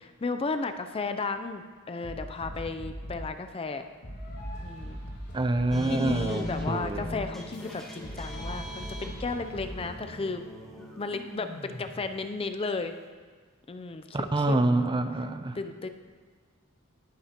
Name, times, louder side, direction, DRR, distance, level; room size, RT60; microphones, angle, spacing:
voice 1, 0.0-3.9 4.6-5.0 5.9-10.4 11.0-12.9 13.7-14.8 15.5-15.9, left 3 dB, 25° left, 8 dB, 0.5 m, -34 dB
sound 1, 2.0-3.3 4.0-10.0, equal, 50° left, 3.3 m, -40 dB
voice 2, 5.3-7.1 14.1-15.6, right 2 dB, 20° right, 8 dB, 0.5 m, -26 dB
sound 2, 5.7-13.1, left 1 dB, ahead, 1.8 m, -41 dB
18.0 x 11.0 x 3.0 m, 1.5 s
head